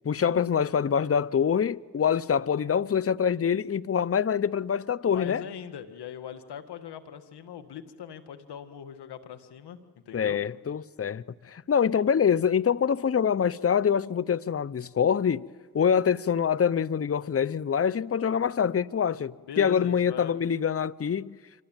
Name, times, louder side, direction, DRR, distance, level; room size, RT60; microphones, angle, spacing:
voice 1, 0.0-5.4 10.1-15.5 15.7-21.4, left 7 dB, 35° left, 0.8 m, -25 dB
voice 2, 5.0-9.8 10.1-10.4 19.4-20.4, left 9 dB, 85° left, 1.8 m, -41 dB
26.0 x 25.0 x 9.1 m
supercardioid pair, 50°, 39 cm